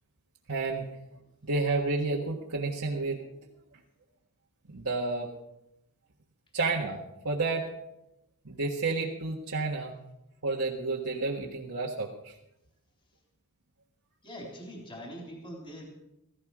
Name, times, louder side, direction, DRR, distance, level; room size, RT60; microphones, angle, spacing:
voice 1, 0.5-0.9 1.4-3.3 4.7-5.3 6.5-7.0 7.2-7.7 8.4-9.9 10.4-12.3, right 3 dB, 70° right, -4 dB, 1.6 m, -30 dB
voice 2, 14.2-15.8, equal, 25° left, 0 dB, 3.8 m, -43 dB
16.5 x 15.5 x 4.9 m, 0.88 s
head